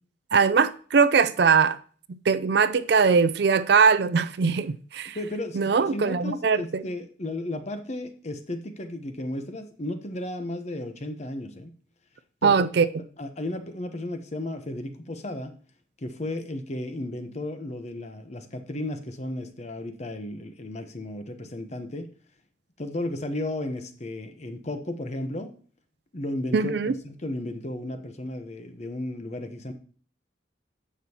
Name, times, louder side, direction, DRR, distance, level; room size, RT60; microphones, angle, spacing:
voice 1, 0.3-1.8 2.1-5.2 5.5-6.8 12.4-12.9 26.5-26.9, right 5 dB, 60° right, 0.4 m, -21 dB
voice 2, 5.1-11.7 12.4-12.5 13.2-15.5 16.0-22.1 22.8-25.5 26.1-29.7, left 1 dB, 35° left, 1.0 m, -34 dB
10.0 x 7.2 x 2.9 m
head